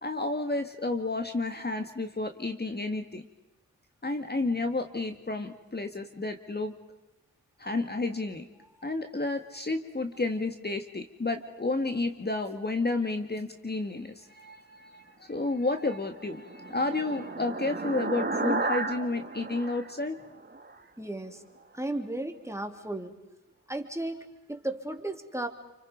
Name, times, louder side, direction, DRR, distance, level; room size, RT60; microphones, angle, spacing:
voice 1, 0.0-3.2 4.0-6.7 7.6-8.5 8.8-20.2, left 2 dB, 30° left, 7 dB, 1.9 m, -31 dB
sound 1, 16.0-20.8, right 3 dB, 30° right, 2.7 m, -33 dB
voice 2, 21.0-21.4 21.7-23.1 23.7-25.5, right 1 dB, 10° right, 5 dB, 3.1 m, -35 dB
29.0 x 25.5 x 5.3 m, 1.0 s
cardioid pair, 45°, 33 cm